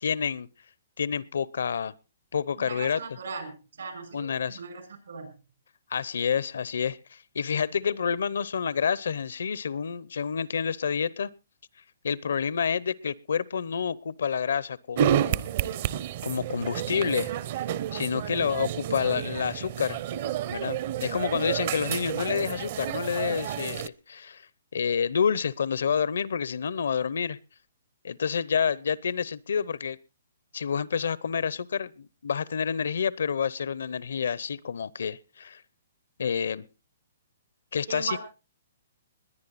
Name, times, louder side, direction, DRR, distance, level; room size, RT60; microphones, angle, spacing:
voice 1, 0.0-0.5 1.0-1.9 2.3-3.0 4.1-4.6 5.9-11.3 12.0-15.4 16.2-17.3 17.9-20.0 20.5-24.4 24.7-27.4 28.0-30.0 30.5-35.6 36.2-36.7 37.7-38.2, left 6 dB, 80° left, 22 dB, 0.8 m, -28 dB
voice 2, 2.6-5.3 37.9-38.2, right 5 dB, 80° right, 9 dB, 6.0 m, -38 dB
sound 1, 15.0-23.9, right 10 dB, 40° right, 0.7 m, -30 dB
21.0 x 9.8 x 4.1 m, 0.31 s
hypercardioid pair, 165°, 0 cm